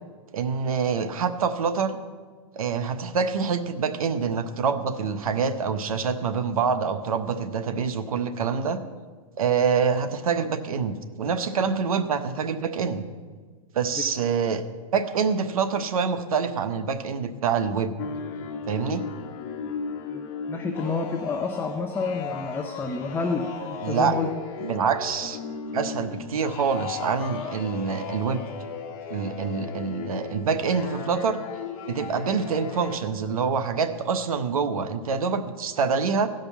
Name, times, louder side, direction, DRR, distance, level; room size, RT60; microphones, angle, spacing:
voice 1, 0.3-2.0 2.5-8.8 9.4-13.0 13.7-14.6 14.9-17.9 18.7-19.1 23.8-24.1 24.6-25.4 25.7-28.4 29.1-31.4 31.9-36.3, right 6 dB, 85° right, 10 dB, 1.0 m, -26 dB
sound 1, 18.0-33.0, left 6 dB, 45° left, 1.4 m, -36 dB
voice 2, 20.1-24.3, left 4 dB, 10° left, 4 dB, 0.7 m, -29 dB
16.0 x 5.3 x 7.2 m, 1.5 s
hypercardioid pair, 130°, 18 cm